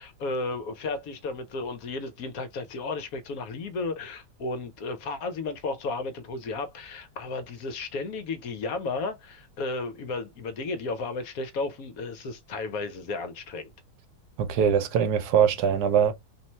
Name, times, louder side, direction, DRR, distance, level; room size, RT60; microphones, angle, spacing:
voice 1, 0.0-13.7, left 3 dB, 65° left, 1.0 m, -33 dB
voice 2, 14.4-16.1, right 7 dB, 70° right, 1.2 m, -22 dB
3.1 x 2.9 x 4.3 m
omnidirectional pair, 1.9 m